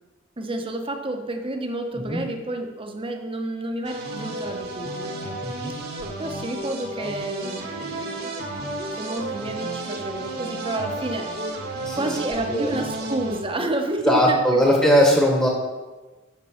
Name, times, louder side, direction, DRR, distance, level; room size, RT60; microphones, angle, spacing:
voice 1, 0.4-5.4 5.9-8.3 8.9-11.4 11.9-14.7, right 2 dB, 25° right, 4 dB, 1.0 m, -30 dB
sound 1, 3.8-13.4, right 2 dB, 50° right, 1.5 m, -32 dB
voice 2, 14.0-15.5, equal, 10° left, -1 dB, 1.3 m, -19 dB
8.1 x 6.6 x 6.4 m, 1.2 s
head